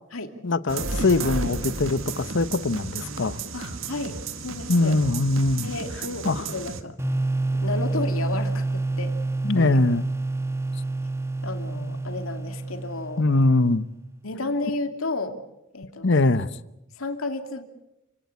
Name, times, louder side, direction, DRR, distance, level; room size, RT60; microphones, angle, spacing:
voice 1, 0.4-3.7 4.7-5.7 6.2-6.4 9.4-10.1 13.2-13.9 16.0-16.5, left 2 dB, 60° left, 1.0 m, -22 dB
sound 1, 0.7-6.8, right 3 dB, 70° right, 1.7 m, -33 dB
voice 2, 3.5-4.2 4.4-5.0 5.6-7.0 7.5-9.2 9.6-9.8 11.4-13.2 14.2-15.4 15.7-16.1 17.0-17.6, left 2 dB, 80° left, 2.6 m, -32 dB
sound 2, 7.0-13.8, right 2 dB, 15° right, 1.5 m, -28 dB
29.0 x 17.5 x 8.4 m
head